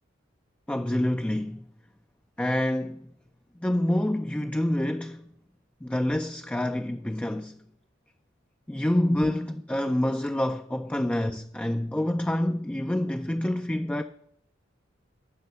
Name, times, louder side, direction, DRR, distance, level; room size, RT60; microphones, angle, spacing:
voice 1, 0.7-1.6 2.4-3.1 3.6-5.3 5.8-7.6 8.7-14.0, left 1 dB, 5° left, 0.4 m, -27 dB
11.5 x 6.4 x 9.1 m
head